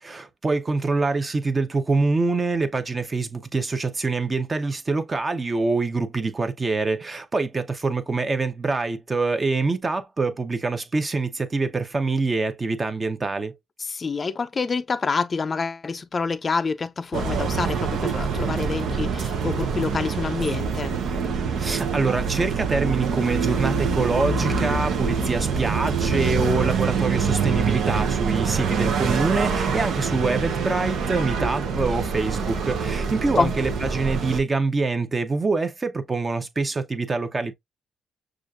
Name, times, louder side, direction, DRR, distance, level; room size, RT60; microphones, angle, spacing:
voice 1, 0.0-13.5 21.6-37.5, right 3 dB, 30° right, 0.8 m, -25 dB
voice 2, 13.8-21.0 33.4-33.5, left 4 dB, 35° left, 0.4 m, -27 dB
sound 1, 17.1-34.4, right 5 dB, 75° right, 0.8 m, -25 dB
6.2 x 2.5 x 2.4 m
cardioid pair, 90°, 0 cm